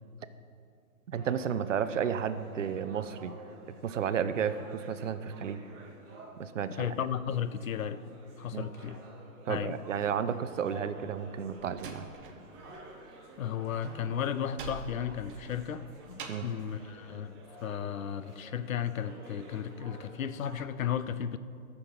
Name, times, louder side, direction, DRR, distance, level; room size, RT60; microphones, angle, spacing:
sound 1, 1.1-20.7, right 1 dB, 15° right, 1.0 m, -52 dB
voice 1, 1.1-3.3 3.8-5.6 6.4-6.9 8.5-8.7 9.4-12.1 16.3-16.5, right 7 dB, 55° right, 12 dB, 0.7 m, -32 dB
voice 2, 6.7-8.0 8.4-9.0 9.5-9.7 13.4-17.3 17.6-21.4, left 9 dB, 65° left, 14 dB, 0.6 m, -34 dB
Slam, 11.0-12.9 13.1-16.6, right 4 dB, 35° right, 1.1 m, -46 dB
13.5 x 6.9 x 5.5 m, 2.4 s
hypercardioid pair, 160°, 44 cm